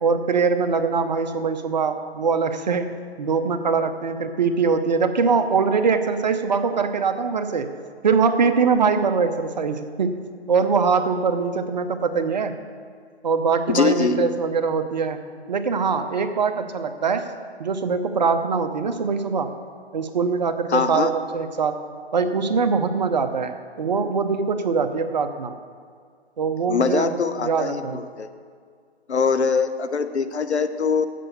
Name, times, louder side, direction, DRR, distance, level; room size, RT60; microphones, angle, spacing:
voice 1, 0.0-2.9 3.2-7.7 8.0-10.2 10.5-12.5 13.2-15.2 15.5-17.2 17.6-19.5 19.9-21.8 22.1-25.5 26.4-28.0, right 5 dB, 40° right, 8 dB, 0.7 m, -22 dB
voice 2, 13.7-14.3 20.7-21.1 26.7-28.3 29.1-31.1, left 5 dB, 80° left, 10 dB, 0.9 m, -22 dB
7.6 x 6.9 x 8.0 m, 2.1 s
figure-of-eight pair, 150°, 33 cm